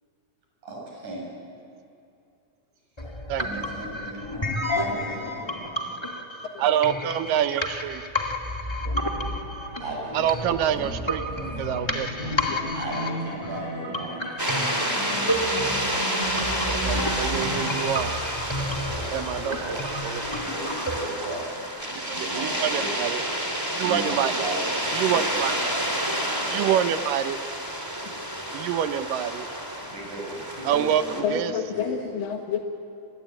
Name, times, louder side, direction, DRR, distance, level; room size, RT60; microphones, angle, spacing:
voice 1, 0.6-1.2 3.4-6.0 9.8-11.0 11.3-11.6 12.7-14.1 18.9-19.9 20.4-22.9 23.7-24.6 24.9-25.8 26.3-27.0 29.8-31.9, right 2 dB, 60° right, -2 dB, 8.9 m, -37 dB
sound 1, 3.0-21.0, left 1 dB, 15° left, 1.1 m, -31 dB
voice 2, 6.6-8.0 10.1-11.2 11.6-12.3 16.7-18.1 19.1-20.2 21.9-23.2 23.7-24.3 24.9-25.6 26.5-27.4 28.5-29.5 30.6-31.0 31.3-31.5, right 10 dB, 80° right, 10 dB, 2.6 m, -26 dB
sound 2, 11.5-17.8, equal, 60° left, 6.5 m, -35 dB
sound 3, 14.4-31.2, right 1 dB, 5° right, 3.0 m, -29 dB
voice 3, 31.2-32.6, left 7 dB, 80° left, 3 dB, 3.2 m, -31 dB
30.0 x 23.0 x 8.8 m, 2.5 s
omnidirectional pair, 4.0 m